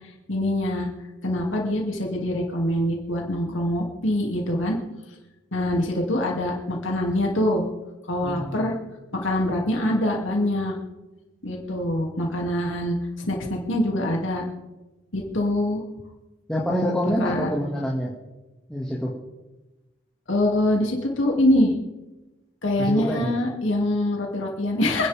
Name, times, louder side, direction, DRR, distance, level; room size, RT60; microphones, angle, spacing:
voice 1, 0.3-0.9 1.2-4.8 5.5-7.6 8.1-8.8 9.1-10.8 11.4-14.4 15.1-15.8 17.2-17.5 20.3-21.7 22.6-25.1, left 1 dB, 85° left, -1 dB, 2.7 m, -24 dB
voice 2, 8.2-8.7 16.5-18.1 18.7-19.1 22.8-23.4, equal, 5° left, -7 dB, 2.1 m, -26 dB
27.0 x 10.5 x 3.6 m, 1.1 s
head